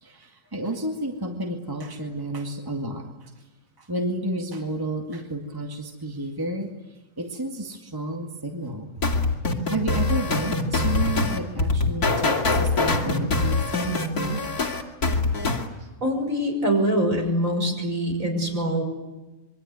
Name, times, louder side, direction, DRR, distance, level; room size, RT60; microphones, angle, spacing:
voice 1, 0.0-3.3 3.8-8.9 9.7-14.4 15.8-15.9, right 1 dB, 15° right, 3 dB, 2.2 m, -31 dB
sound 1, 9.0-15.7, left 3 dB, 90° left, 3.0 m, -23 dB
voice 2, 16.0-18.8, equal, 60° right, 2 dB, 6.3 m, -24 dB
26.5 x 23.0 x 9.6 m, 1.1 s
omnidirectional pair, 1.6 m